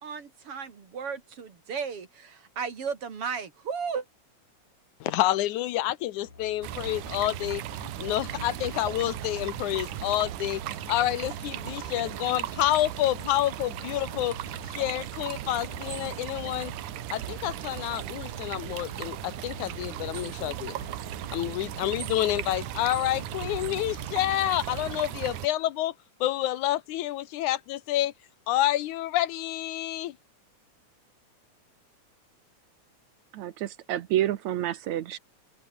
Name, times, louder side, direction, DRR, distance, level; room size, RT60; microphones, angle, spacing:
voice 1, 0.0-4.0, right 6 dB, 50° right, 3.3 m, -35 dB
voice 2, 5.0-7.6 8.0-10.6 10.9-14.4 14.7-16.7 17.1-20.8 21.3-25.9 26.2-28.1 28.5-30.1, left 14 dB, 80° left, 2.3 m, -28 dB
sound 1, 6.2-24.4, left 3 dB, 55° left, 7.5 m, -48 dB
sound 2, 6.6-25.5, right 14 dB, 90° right, 2.6 m, -37 dB
voice 3, 33.3-35.2, right 12 dB, 70° right, 2.2 m, -29 dB
open air
omnidirectional pair, 3.5 m